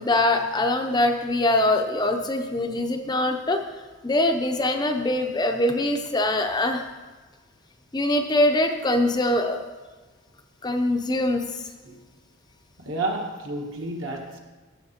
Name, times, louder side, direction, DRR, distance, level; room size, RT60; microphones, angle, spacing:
voice 1, 0.0-3.6 4.0-6.8 7.9-9.6 10.6-11.7, left 1 dB, 20° left, 4 dB, 0.5 m, -23 dB
voice 2, 12.8-14.4, right 2 dB, 65° right, 1 dB, 1.4 m, -31 dB
15.0 x 7.7 x 2.9 m, 1.3 s
head